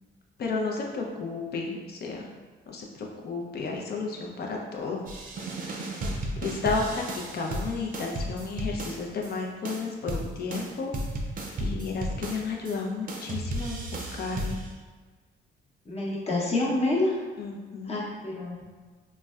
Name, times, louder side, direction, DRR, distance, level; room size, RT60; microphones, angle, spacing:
voice 1, 0.4-2.3 2.7-5.0 5.6-5.8 6.4-10.9 11.6-13.8 14.1-14.6 17.4-18.1, left 4 dB, 55° left, 0 dB, 0.6 m, -32 dB
sound 1, 5.1-9.3 9.7-12.8 13.1-14.7, right 1 dB, 45° right, 0.5 m, -34 dB
voice 2, 15.9-17.2 17.8-18.6, left 2 dB, 30° left, -4 dB, 0.9 m, -27 dB
3.9 x 2.2 x 2.3 m, 1.4 s
cardioid pair, 90°, 20 cm